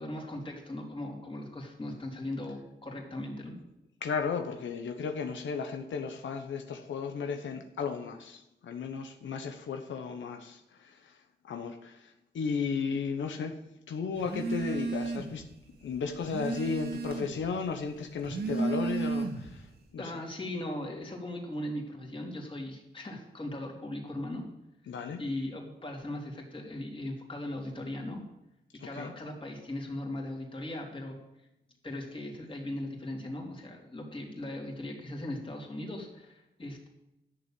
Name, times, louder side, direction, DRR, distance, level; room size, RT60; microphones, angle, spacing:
voice 1, 0.0-3.6 20.0-24.4 25.2-28.2 28.8-31.2 31.8-36.9, left 1 dB, 25° left, 0 dB, 3.2 m, -38 dB
voice 2, 4.0-10.9 11.4-12.1 12.3-13.5 13.9-15.4 15.8-19.6 19.9-20.1 24.9-25.2 28.8-29.1, left 5 dB, 90° left, 5 dB, 1.1 m, -34 dB
Telephone, 14.2-15.5 15.8-17.5 18.1-19.6, right 3 dB, 60° right, 2.0 m, -33 dB
11.5 x 7.0 x 9.0 m, 0.89 s
wide cardioid pair, 105°, 19 cm